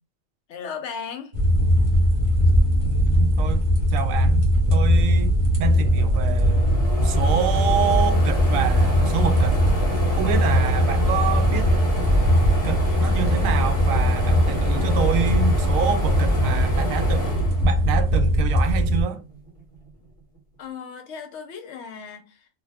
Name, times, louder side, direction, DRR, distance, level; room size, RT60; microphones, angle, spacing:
voice 1, 0.5-1.3 20.6-22.5, left 6 dB, 70° left, 0.8 m, -36 dB
sound 1, 1.3-19.0, equal, 35° right, 1.0 m, -20 dB
voice 2, 2.9-9.6 10.2-11.7 12.6-17.3 17.6-19.2, right 8 dB, 85° right, 1.0 m, -27 dB
sound 2, 5.4-5.5 5.7-18.3 18.8-19.9, right 1 dB, 35° left, 0.8 m, -31 dB
2.7 x 2.3 x 3.3 m
omnidirectional pair, 1.4 m